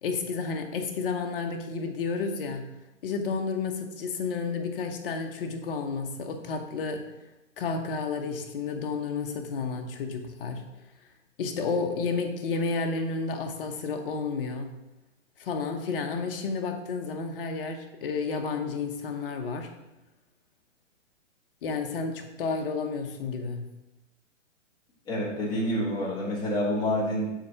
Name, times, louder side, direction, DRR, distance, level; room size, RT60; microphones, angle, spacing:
voice 1, 0.0-2.6 3.0-7.0 7.6-10.6 11.4-14.7 15.4-19.7 21.6-23.6, left 4 dB, 45° left, 4 dB, 1.0 m, -31 dB
voice 2, 25.1-27.3, equal, 10° left, -5 dB, 1.2 m, -28 dB
7.5 x 3.3 x 5.5 m, 0.98 s
hypercardioid pair, 155°, 38 cm